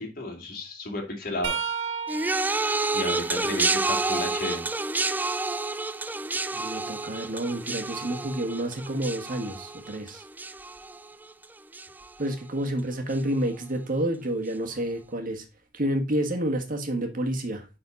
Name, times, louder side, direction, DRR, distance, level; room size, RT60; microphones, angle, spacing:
voice 1, 0.0-1.5 2.9-4.7, left 2 dB, 50° left, 2.7 m, -33 dB
sound 1, 1.4-5.2 5.7-7.7 10.6-10.8 12.0-12.2 13.5-13.6, right 6 dB, 90° right, 1.6 m, -38 dB
sound 2, 2.1-11.4 11.7-12.3 13.1-13.2, right 3 dB, 10° right, 0.3 m, -29 dB
voice 2, 6.5-10.2 12.2-15.5 15.7-17.7, right 1 dB, 50° right, 1.7 m, -29 dB
9.4 x 4.3 x 4.0 m
head